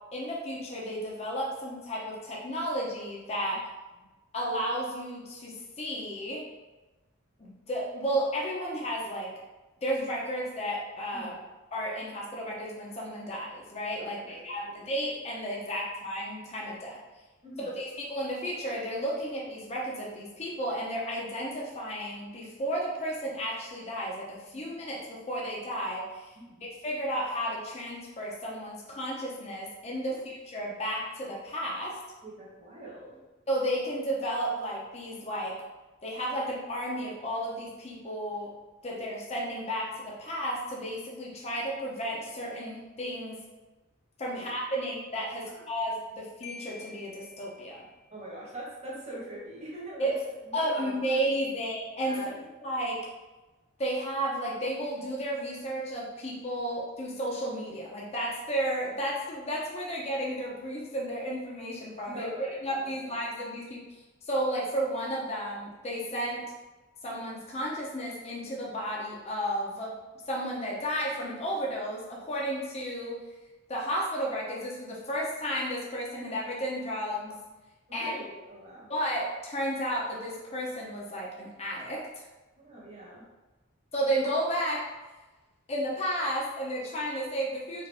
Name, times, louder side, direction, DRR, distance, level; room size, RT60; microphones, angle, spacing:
voice 1, 0.1-3.7 4.3-6.4 7.4-9.3 9.8-11.3 11.7-17.0 17.7-32.0 33.5-35.6 36.0-38.5 38.8-43.4 44.2-47.8 50.0-50.2 50.5-52.3 52.6-53.0 53.8-62.3 62.6-63.8 64.2-66.4 67.0-69.9 70.3-73.2 73.7-77.4 77.9-78.1 78.9-82.2 83.9-84.8 85.7-87.9, equal, 30° left, -4 dB, 0.8 m, -33 dB
voice 2, 11.1-11.5 14.2-14.8 17.4-17.7 24.5-24.6 26.4-26.6 32.2-33.2 44.3-44.5 45.4-45.7 48.1-50.1 50.4-51.2 52.0-52.3 62.1-63.2 77.9-78.9 82.6-83.2, right 1 dB, 35° right, -7 dB, 1.5 m, -43 dB
Marimba xylophone, 46.4-48.2, left 4 dB, 75° left, 0.5 m, -48 dB
4.8 x 2.7 x 3.5 m, 1.1 s
head